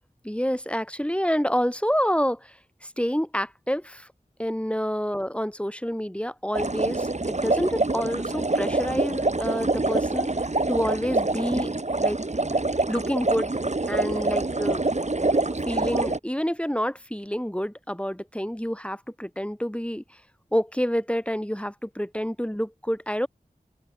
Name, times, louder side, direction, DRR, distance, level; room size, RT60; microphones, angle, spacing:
voice 1, 0.2-4.1 4.4-11.7 12.0-12.2 12.9-13.5 13.9-14.8 15.3-15.4 15.7-20.0 20.5-23.3, equal, 5° left, 5.1 m, -28 dB
sound 1, 6.5-16.2, right 2 dB, 45° right, 1.4 m, -25 dB
open air
wide cardioid pair, 45°, 16 cm